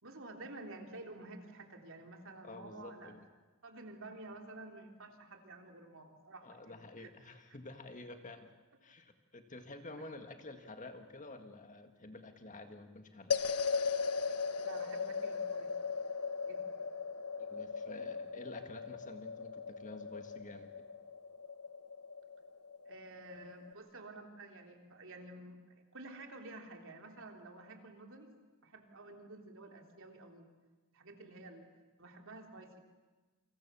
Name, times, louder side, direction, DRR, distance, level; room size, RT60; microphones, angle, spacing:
voice 1, 0.0-3.2 3.6-7.1 10.0-10.1 14.6-16.0 16.4-16.8 22.9-25.6 25.9-28.3 28.6-30.5 30.9-31.7 32.0-32.8, right 2 dB, 60° right, 3 dB, 3.5 m, -51 dB
voice 2, 2.4-3.3 6.4-8.5 8.8-13.4 17.4-20.8, left 2 dB, 35° left, 6 dB, 1.9 m, -50 dB
sound 1, 13.3-23.7, left 5 dB, 85° left, 1.2 m, -38 dB
29.0 x 25.5 x 7.1 m, 1.3 s
head